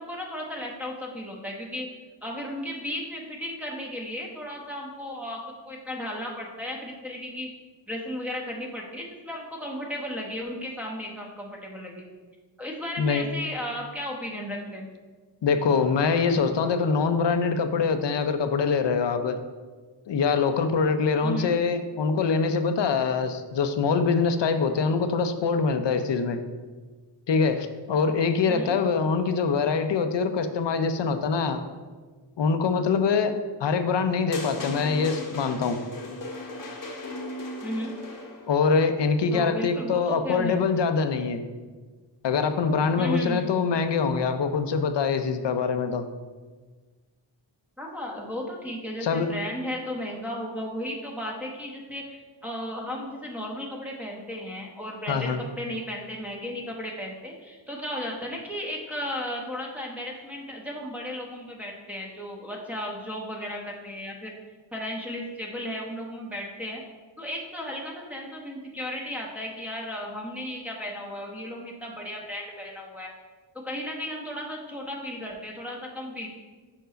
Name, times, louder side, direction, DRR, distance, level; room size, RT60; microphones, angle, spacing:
voice 1, 0.0-1.9 2.2-5.4 5.7-7.5 7.9-12.0 12.6-14.9 21.2-21.5 28.5-28.7 37.6-37.9 39.3-40.6 43.0-43.5 47.8-52.2 52.4-64.3 64.7-66.8 67.2-73.1 73.5-76.3, equal, 5° right, -3 dB, 1.0 m, -35 dB
voice 2, 15.4-19.4 20.1-26.4 27.3-31.6 32.4-35.8 38.5-41.4 42.2-46.0 49.0-49.3 55.1-55.4, left 5 dB, 65° left, 9 dB, 0.6 m, -24 dB
sound 1, 34.3-38.6, left 2 dB, 45° left, 0.9 m, -37 dB
5.4 x 4.5 x 5.1 m, 1.4 s
wide cardioid pair, 115°, 45 cm